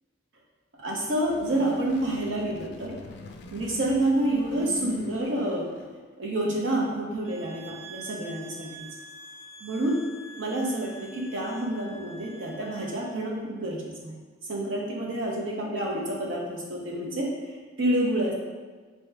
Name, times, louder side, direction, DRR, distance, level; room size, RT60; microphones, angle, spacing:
sound 1, 0.8-6.1, left 4 dB, 55° left, 0.3 m, -46 dB
voice 1, 0.8-3.0 3.5-5.7 6.2-8.7 9.6-10.0 10.4-14.1 14.5-17.3 17.8-18.3, right 1 dB, 65° right, -2 dB, 0.8 m, -28 dB
sound 2, 7.2-13.1, right 2 dB, 5° right, 0.7 m, -46 dB
4.4 x 2.8 x 3.4 m, 1.4 s
head